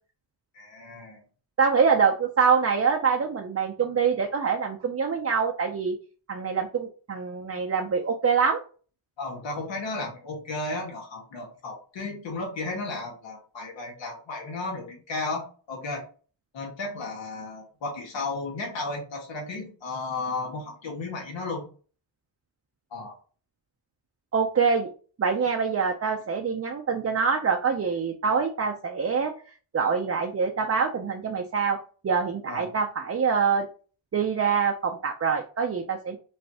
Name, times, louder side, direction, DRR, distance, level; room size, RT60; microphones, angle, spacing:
voice 1, 0.5-1.2 9.2-16.0 16.5-21.7 22.9-23.1 32.5-32.7, left 3 dB, 80° left, 0 dB, 1.7 m, -34 dB
voice 2, 1.6-5.9 6.3-8.6 24.3-24.9 25.2-29.3 29.7-31.8 32.0-33.7 34.1-36.2, right 6 dB, 35° right, 2 dB, 0.6 m, -25 dB
5.4 x 3.3 x 2.8 m, 0.39 s
wide cardioid pair, 100°, 44 cm